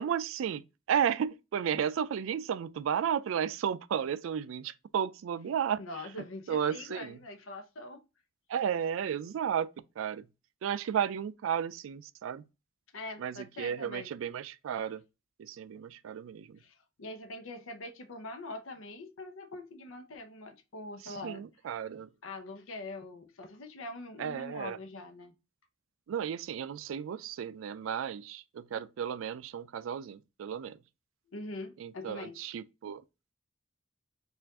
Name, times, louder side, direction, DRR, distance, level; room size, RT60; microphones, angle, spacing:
voice 1, 0.0-5.8 6.5-7.2 8.5-9.7 10.0-10.2 10.6-12.4 13.2-15.0 15.4-16.6 21.0-22.1 24.2-24.8 26.1-30.8 31.8-33.0, right 8 dB, 85° right, 0.3 m, -33 dB
voice 2, 5.8-8.0 12.9-14.1 15.7-15.8 16.6-21.4 22.2-25.3 31.3-32.4, left 2 dB, 90° left, 0.7 m, -43 dB
4.5 x 2.5 x 3.5 m
head